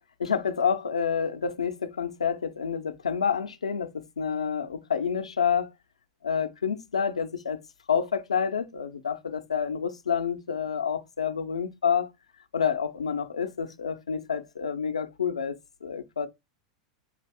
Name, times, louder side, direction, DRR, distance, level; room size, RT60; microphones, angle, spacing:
voice 1, 0.2-5.7 6.2-7.6 7.9-12.1 12.5-16.3, left 7 dB, 85° left, 0.5 m, -28 dB
4.9 x 2.6 x 3.4 m
hypercardioid pair, 95°, 3 cm